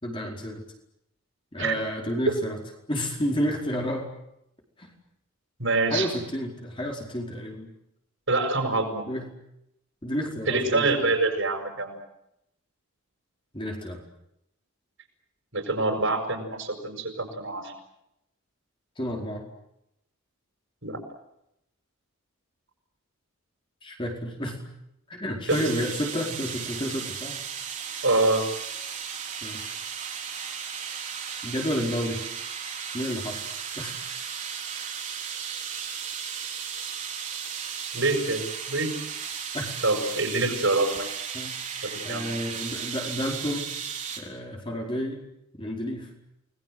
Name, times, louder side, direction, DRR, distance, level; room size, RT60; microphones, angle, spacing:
voice 1, 0.0-0.6 1.5-2.6 2.9-4.1 4.8-4.9 5.9-7.7 9.1-9.3 10.0-11.1 13.5-14.0 19.0-19.5 23.8-24.6 25.1-27.4 29.4-29.7 31.4-32.2 32.9-33.4 33.7-33.9 39.5-39.7 41.3-41.6 42.0-43.7 44.2-45.2 45.5-46.1, equal, 25° left, 1 dB, 4.7 m, -31 dB
voice 2, 5.6-6.1 8.3-9.0 10.5-12.0 15.5-17.7 20.8-21.0 25.5-25.7 28.0-28.5 37.9-38.9 39.8-41.1 41.8-42.3, right 2 dB, 60° right, 4 dB, 7.0 m, -25 dB
sound 1, 25.5-44.2, right 7 dB, 35° right, 4.2 m, -35 dB
29.5 x 21.0 x 7.9 m, 0.81 s
head